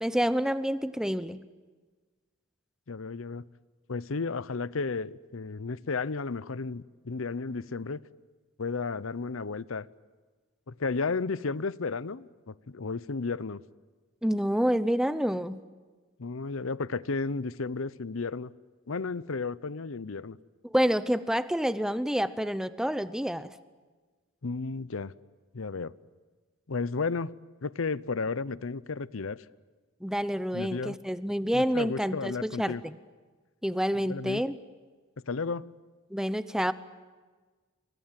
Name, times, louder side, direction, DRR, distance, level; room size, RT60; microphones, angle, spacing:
voice 1, 0.0-1.4 14.2-15.6 20.6-23.5 30.0-32.9 33.6-34.5 36.1-36.7, equal, 5° right, 13 dB, 0.8 m, -28 dB
voice 2, 2.9-3.5 3.9-8.0 8.6-9.9 10.7-13.6 16.2-18.5 18.9-20.4 24.4-25.1 25.5-25.9 26.7-29.4 30.5-31.0 31.5-32.8 34.0-34.4 35.3-35.7, left 4 dB, 75° left, 18 dB, 0.7 m, -33 dB
29.0 x 24.5 x 7.6 m, 1.4 s
head